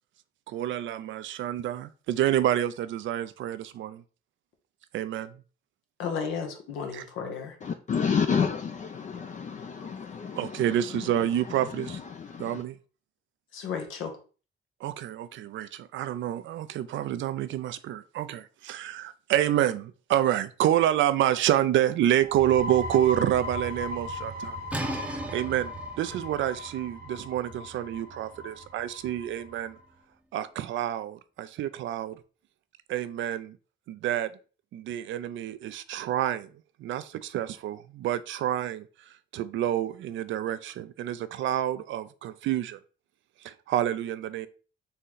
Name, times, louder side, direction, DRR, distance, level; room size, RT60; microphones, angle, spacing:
voice 1, 0.5-4.0 4.9-5.3 6.9-7.0 9.8-9.9 10.4-12.0 12.4-12.8 14.8-24.6 24.9-29.8 30.3-32.2 32.9-33.6 33.9-34.3 34.7-36.5 36.8-38.9 39.3-42.8 43.4-44.5, right 12 dB, 75° right, 0.5 m, -28 dB
voice 2, 6.0-7.5 13.5-14.1, left 6 dB, 85° left, 1.1 m, -33 dB
voice 3, 7.6-12.6, left 6 dB, 40° left, 0.5 m, -31 dB
sound 1, 22.2-29.7, equal, 50° right, 0.9 m, -38 dB
sound 2, 24.7-30.3, right 1 dB, 5° right, 0.7 m, -40 dB
4.1 x 3.1 x 3.9 m
cardioid pair, 90°, 20 cm